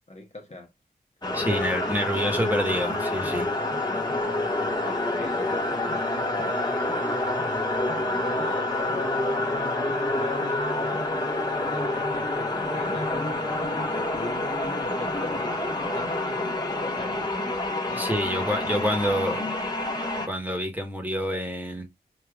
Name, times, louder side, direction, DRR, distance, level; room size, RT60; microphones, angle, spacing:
voice 1, 0.1-0.7 1.2-2.2 3.9-4.2 4.8-7.2 8.0-8.9 10.1-17.3 17.9-19.4, left 2 dB, 40° left, 1.3 m, -42 dB
sound 1, 1.2-20.3, left 2 dB, 25° left, 1.4 m, -27 dB
voice 2, 1.3-3.5 18.0-19.4 20.3-21.9, equal, 10° right, 1.5 m, -27 dB
5.3 x 2.9 x 2.4 m
cardioid pair, 45°, 16 cm